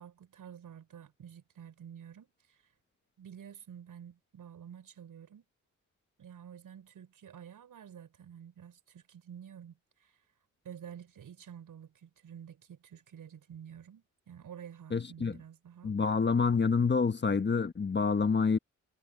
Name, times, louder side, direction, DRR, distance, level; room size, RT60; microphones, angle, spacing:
voice 1, 0.0-2.6 3.2-5.4 6.2-10.2 10.6-15.9, right 8 dB, 85° right, 6.3 m, -50 dB
voice 2, 14.9-15.4 15.8-18.6, left 5 dB, 35° left, 1.4 m, -27 dB
cardioid pair, 85°, 32 cm